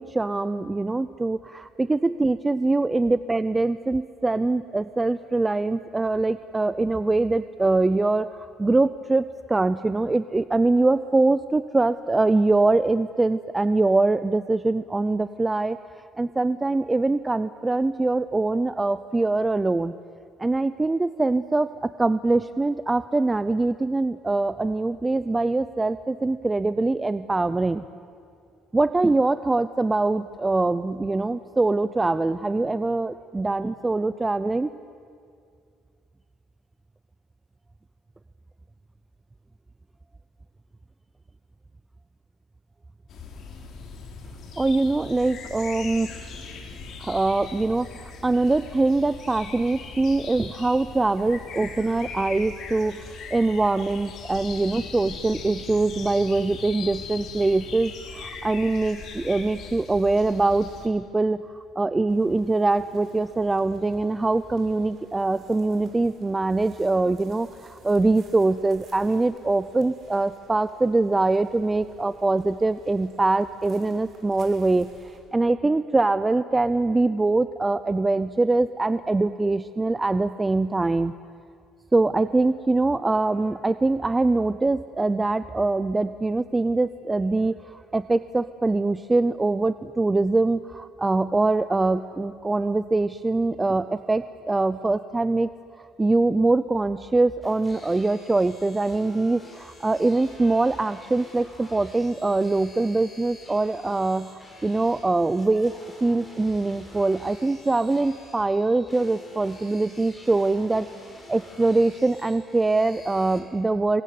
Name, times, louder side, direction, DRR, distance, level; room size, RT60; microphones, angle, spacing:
voice 1, 0.0-15.8 16.2-19.9 20.4-27.8 28.7-34.7 44.6-46.1 47.0-53.0 53.3-81.1 81.9-95.5 95.8-105.7 106.0-110.9 111.3-114.0, right 2 dB, 15° right, 13 dB, 0.6 m, -23 dB
sound 1, 43.1-60.9, left 4 dB, 55° left, 3.9 m, -39 dB
sound 2, 62.1-75.2, right 3 dB, 45° right, 6.6 m, -53 dB
sound 3, 97.4-113.4, left 1 dB, 15° left, 6.2 m, -49 dB
27.0 x 23.0 x 9.6 m, 2.3 s
cardioid pair, 120°, 0 cm